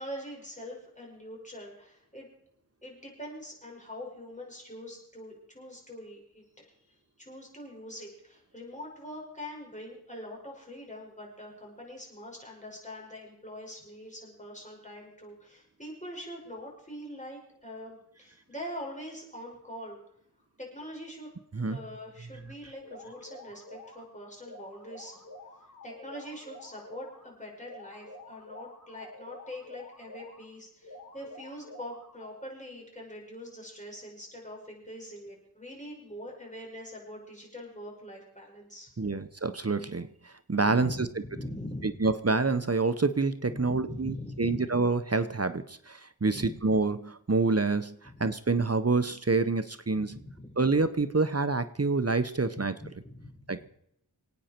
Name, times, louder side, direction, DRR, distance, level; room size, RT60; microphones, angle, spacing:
voice 1, 0.0-2.3 2.8-20.0 20.6-21.3 21.7-25.2 25.6-39.1 40.7-42.0 43.5-44.6 46.3-46.5 48.0-48.2 49.9-50.6 52.5-53.4, left 1 dB, 20° left, -1 dB, 5.4 m, -43 dB
sound 1, 22.8-24.0 24.4-27.2 27.6-30.4 30.8-32.4, left 2 dB, 60° left, 7.3 m, -49 dB
voice 2, 39.0-40.1 40.5-40.9 42.0-50.2 50.6-52.7 53.5-53.7, right 3 dB, 40° right, 11 dB, 0.8 m, -27 dB
27.0 x 9.1 x 4.4 m, 0.73 s
wide cardioid pair, 40°, 38 cm